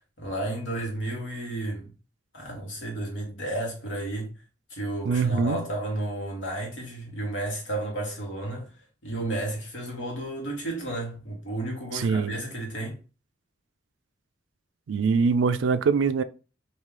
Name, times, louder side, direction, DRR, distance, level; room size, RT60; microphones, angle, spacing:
voice 1, 0.0-1.9 2.3-4.3 4.7-8.7 9.0-13.0, right 1 dB, 85° left, 1.5 m, -32 dB
voice 2, 5.0-5.6 11.9-12.4 14.9-16.2, right 5 dB, 80° right, 0.3 m, -23 dB
3.1 x 2.7 x 3.6 m
head